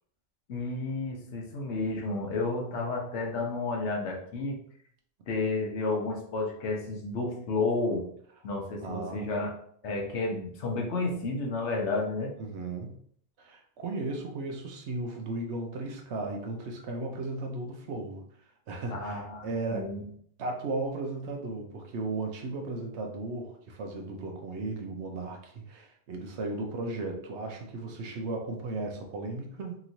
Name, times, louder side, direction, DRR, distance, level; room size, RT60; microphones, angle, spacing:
voice 1, 0.5-4.6 5.3-8.1 8.4-9.5 9.8-12.3 18.9-20.0, left 3 dB, 70° left, 0 dB, 1.0 m, -31 dB
voice 2, 8.8-9.2 12.4-13.0 13.4-18.2 18.7-19.9 20.4-29.8, right 2 dB, 70° right, 2 dB, 0.8 m, -35 dB
2.9 x 2.9 x 2.6 m, 0.63 s
omnidirectional pair, 1.3 m